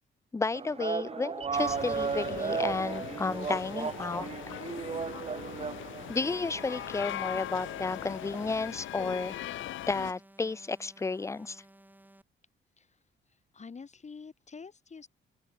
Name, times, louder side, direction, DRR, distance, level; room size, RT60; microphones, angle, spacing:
voice 1, 0.3-4.3 6.1-9.4 9.9-11.6, left 3 dB, 15° left, 0.5 m, -32 dB
sound 1, 0.5-8.5, right 6 dB, 30° right, 0.8 m, -36 dB
sound 2, 1.5-10.1, left 14 dB, 75° left, 1.0 m, -40 dB
sound 3, 3.2-12.2, right 1 dB, 10° right, 4.4 m, -57 dB
voice 2, 13.3-15.1, left 5 dB, 35° left, 7.4 m, -47 dB
open air
cardioid pair, 90°, 20 cm